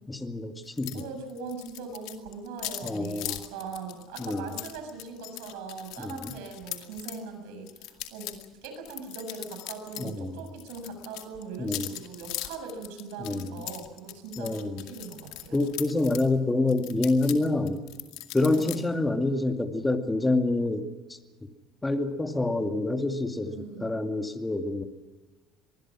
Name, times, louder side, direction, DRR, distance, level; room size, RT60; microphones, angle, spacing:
voice 1, 0.1-1.0 2.8-3.4 4.2-4.5 6.0-6.3 10.0-10.3 11.6-11.9 13.2-13.6 14.4-14.9 15.5-17.8 18.3-20.9 21.8-23.5 23.8-24.8, left 2 dB, 15° left, 6 dB, 2.4 m, -27 dB
sound 1, 0.8-1.0 1.3-7.2 7.7-10.1 10.4-16.3 16.7-18.8, left 16 dB, 75° left, 2.3 m, -40 dB
voice 2, 0.9-15.6 18.5-18.8 23.4-23.9, right 4 dB, 80° right, 6 dB, 7.0 m, -40 dB
25.5 x 21.0 x 6.3 m, 1.3 s
supercardioid pair, 100°, 0 cm